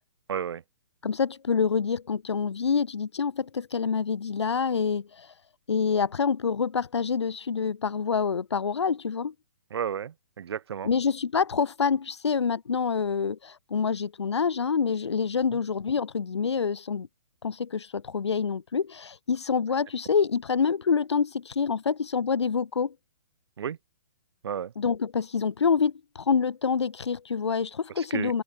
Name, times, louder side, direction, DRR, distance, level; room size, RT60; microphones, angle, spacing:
voice 1, 0.3-0.6 9.7-10.9 15.5-15.6 23.6-23.8 24.4-24.7 28.0-28.3, right 8 dB, 65° right, 3.6 m, -32 dB
voice 2, 1.0-5.3 5.7-9.3 10.8-17.1 17.4-22.9 24.8-28.4, left 6 dB, 75° left, 3.0 m, -27 dB
hypercardioid pair, 130°, 14 cm